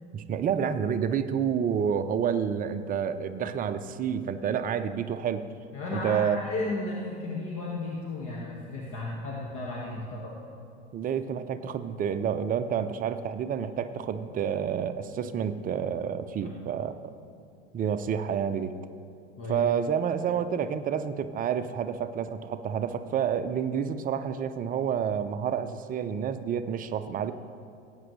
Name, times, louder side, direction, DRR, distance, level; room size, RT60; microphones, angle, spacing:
voice 1, 0.1-5.5 5.9-6.4 10.9-17.1 17.7-18.7 19.5-27.3, right 8 dB, 25° right, 10 dB, 0.6 m, -29 dB
voice 2, 5.7-10.4 16.4-16.5 19.4-19.6, left 2 dB, 40° left, -3 dB, 1.8 m, -34 dB
18.0 x 8.9 x 3.2 m, 2.5 s
figure-of-eight pair, 85°, 34 cm